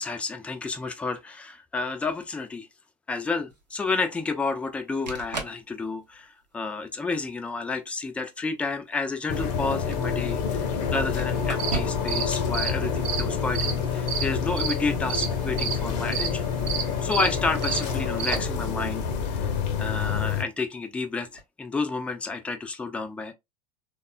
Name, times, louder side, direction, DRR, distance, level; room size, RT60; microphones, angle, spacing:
voice 1, 0.0-2.7 3.1-16.5 17.0-19.1 19.3-19.5 19.8-23.3, left 4 dB, 5° left, 0.3 m, -30 dB
sound 1, 3.5-3.6 4.8-4.9 5.1-5.6 6.1-6.5 7.5-7.6 9.2-10.1 11.2-12.2 12.5-12.6 14.9-15.6 16.0-16.1 16.9-17.0 17.6-18.6 21.2-21.4, right 3 dB, 85° right, 0.7 m, -38 dB
sound 2, 9.3-20.4, left 6 dB, 45° left, 0.6 m, -28 dB
sound 3, 11.4-18.4, right 7 dB, 50° right, 0.8 m, -32 dB
3.4 x 2.1 x 2.3 m
figure-of-eight pair, 80°, 21 cm